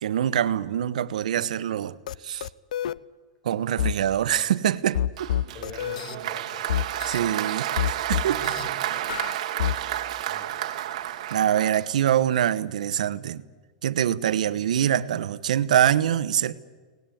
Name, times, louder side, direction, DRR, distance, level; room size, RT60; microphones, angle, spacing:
voice 1, 0.0-2.5 3.4-5.3 7.1-8.4 11.3-13.4 13.8-16.5, right 10 dB, 90° right, 1.1 m, -24 dB
sound 1, 2.1-2.2 2.4-3.0 3.8-4.0 4.9-6.2 6.7-7.2 7.8-8.6 9.1-9.8, left 10 dB, 85° left, 0.7 m, -27 dB
Applause, 5.2-12.3, right 12 dB, 65° right, 1.8 m, -31 dB
voice 2, 5.5-6.7 8.3-9.0 10.3-10.6, left 3 dB, 25° left, 4.6 m, -43 dB
23.5 x 19.5 x 9.2 m
supercardioid pair, 160°, 4 cm